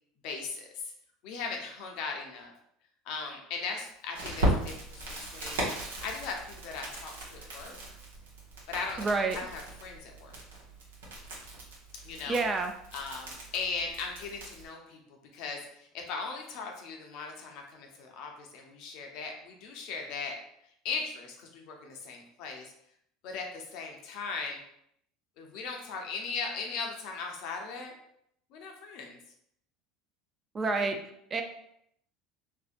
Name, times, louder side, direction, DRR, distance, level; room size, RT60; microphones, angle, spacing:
voice 1, 0.2-0.9 1.2-2.5 3.1-7.8 8.7-10.4 12.0-12.4 12.9-15.0 15.3-20.4 20.8-22.6 23.2-24.6 25.4-27.9 28.5-29.2, left 4 dB, 65° left, 1 dB, 0.6 m, -38 dB
Crackle, 4.1-14.7, right 1 dB, 85° right, 0.8 m, -37 dB
voice 2, 9.0-9.4 12.3-12.7 30.5-31.0 31.3-31.4, right 3 dB, 30° right, 5 dB, 0.4 m, -28 dB
2.6 x 2.1 x 2.4 m, 0.73 s
hypercardioid pair, 80°, 0 cm